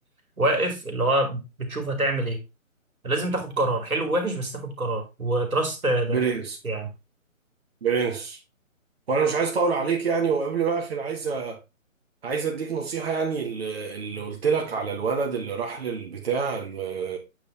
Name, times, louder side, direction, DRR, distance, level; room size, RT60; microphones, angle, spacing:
voice 1, 0.4-2.4 3.0-6.2 6.6-6.9, right 1 dB, 85° right, 2.8 m, -25 dB
voice 2, 6.1-6.6 7.8-8.4 9.1-11.6 12.2-17.2, right 5 dB, 45° right, 2.0 m, -26 dB
8.6 x 4.1 x 4.1 m
figure-of-eight pair, 150°, 41 cm